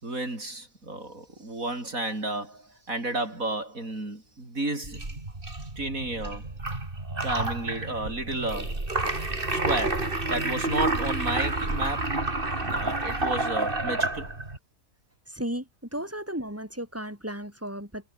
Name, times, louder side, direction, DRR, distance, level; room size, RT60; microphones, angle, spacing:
voice 1, 0.0-5.0 5.8-6.4 7.2-8.8 9.5-12.1 12.6-14.3, right 2 dB, 80° right, 6.8 m, -32 dB
sound 1, 4.8-14.6, right 2 dB, 40° right, 3.8 m, -29 dB
voice 2, 15.3-18.1, equal, 10° right, 7.9 m, -35 dB
omnidirectional pair, 1.4 m